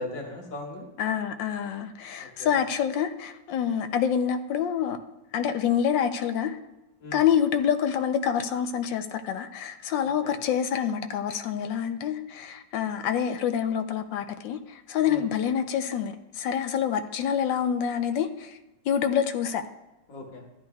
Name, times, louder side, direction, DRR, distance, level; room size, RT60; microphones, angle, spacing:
voice 1, 0.0-0.9 2.2-2.5 7.0-7.2 10.2-10.3 15.1-15.3 20.1-20.4, left 2 dB, 50° left, 1.8 m, -38 dB
voice 2, 1.0-5.0 5.3-6.6 7.1-14.6 14.9-18.5 18.9-19.6, left 8 dB, 85° left, 1.4 m, -27 dB
13.5 x 10.5 x 2.3 m
omnidirectional pair, 1.9 m